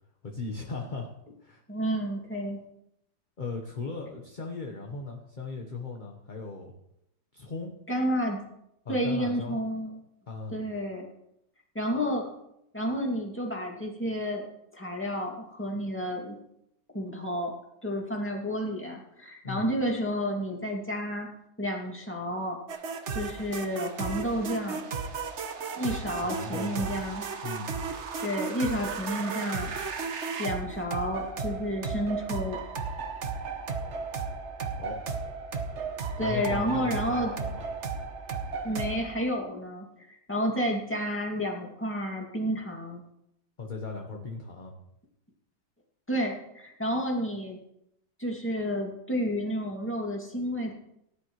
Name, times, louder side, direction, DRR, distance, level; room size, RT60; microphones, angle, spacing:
voice 1, 0.2-1.1 1.4-1.6 3.4-6.7 7.3-7.7 8.8-9.6 10.3-10.6 19.4-19.8 26.1-26.9 27.4-27.8 34.8-35.0 36.2-37.6 43.6-44.7, left 3 dB, 30° left, 1 dB, 1.1 m, -37 dB
voice 2, 1.7-2.6 7.9-8.4 8.9-10.0 10.5-11.1 11.7-12.3 12.7-14.5 14.7-16.4 16.9-17.5 17.8-21.3 21.6-22.6 23.1-24.8 25.8-27.3 28.2-29.8 30.4-32.6 36.2-37.3 38.6-43.0 46.1-47.6 48.2-50.7, equal, 5° left, -1 dB, 2.1 m, -30 dB
sound 1, 22.7-39.2, right 5 dB, 50° right, 1.1 m, -34 dB
18.0 x 10.5 x 3.1 m, 0.79 s
omnidirectional pair, 1.9 m